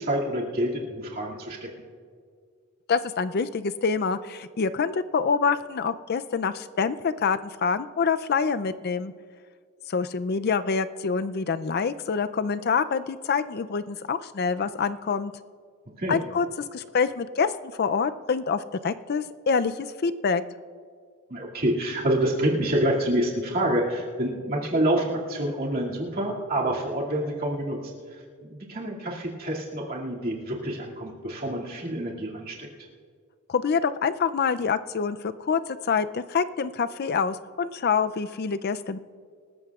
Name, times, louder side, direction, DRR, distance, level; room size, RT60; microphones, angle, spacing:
voice 1, 0.0-1.7 16.0-16.2 21.3-27.8 28.4-32.7, right 1 dB, 45° right, -3 dB, 2.4 m, -27 dB
voice 2, 2.9-9.1 9.9-15.3 16.1-16.5 16.7-20.4 33.5-39.0, left 5 dB, 50° left, 12 dB, 0.4 m, -26 dB
26.0 x 14.0 x 2.4 m, 2.1 s
head